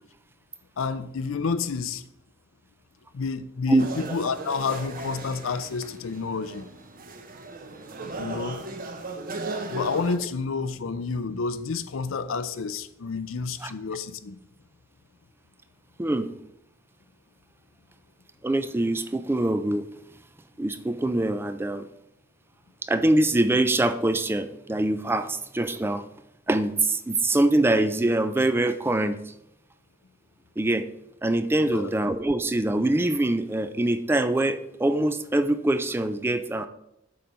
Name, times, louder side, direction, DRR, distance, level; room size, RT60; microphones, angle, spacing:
voice 1, 0.8-2.0 3.1-6.7 8.1-8.6 9.7-14.4 31.6-31.9, left 4 dB, 80° left, 0.5 m, -29 dB
sound 1, 3.8-10.2, right 2 dB, 45° right, 0.8 m, -37 dB
voice 2, 16.0-16.3 18.4-19.9 20.6-21.9 22.8-26.1 26.5-29.3 30.6-30.9 31.2-36.7, right 1 dB, 10° right, 0.3 m, -24 dB
7.7 x 4.4 x 5.3 m
head